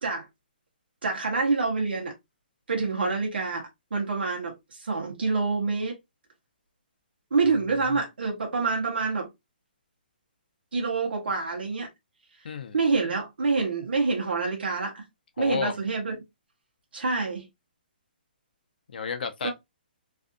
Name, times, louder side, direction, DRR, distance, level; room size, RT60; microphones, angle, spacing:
voice 1, 1.0-2.1 2.7-6.0 7.3-9.3 10.7-11.9 12.7-15.0 15.4-16.2 16.9-17.5 19.4-19.5, right 4 dB, 85° right, 0.9 m, -27 dB
voice 2, 12.4-12.8 15.4-15.7 18.9-19.5, left 6 dB, 65° left, 0.7 m, -31 dB
2.6 x 2.4 x 2.5 m
hypercardioid pair, 160°, 5 cm